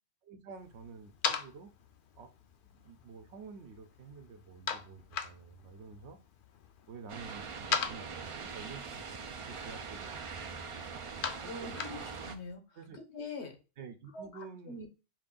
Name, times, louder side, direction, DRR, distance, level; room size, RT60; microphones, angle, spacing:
voice 1, 0.2-1.7 2.1-2.3 2.6-6.2 6.9-12.0 12.8-13.0 13.8-14.9, right 5 dB, 75° right, 1.0 m, -50 dB
sound 1, 0.6-12.5, left 6 dB, 60° left, 0.6 m, -41 dB
sound 2, 7.1-12.4, right 5 dB, 55° right, 0.3 m, -42 dB
voice 2, 11.5-13.6 14.1-14.9, left 2 dB, 75° left, 1.3 m, -44 dB
4.7 x 2.5 x 3.7 m
omnidirectional pair, 1.2 m